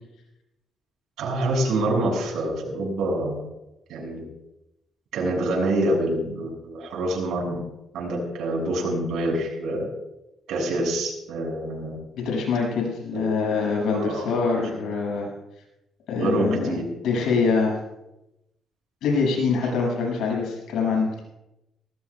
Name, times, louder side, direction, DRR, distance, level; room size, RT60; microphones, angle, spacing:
voice 1, 1.2-3.4 3.9-4.2 5.1-7.6 7.9-9.9 10.5-12.0 13.1-13.4 13.9-14.3 16.2-16.9, right 1 dB, 80° right, -1 dB, 6.3 m, -26 dB
voice 2, 12.2-15.3 16.1-16.8 17.0-17.8 19.0-21.2, left 4 dB, 80° left, -1 dB, 7.1 m, -24 dB
20.0 x 19.0 x 2.4 m, 0.91 s
cardioid pair, 90°, 0 cm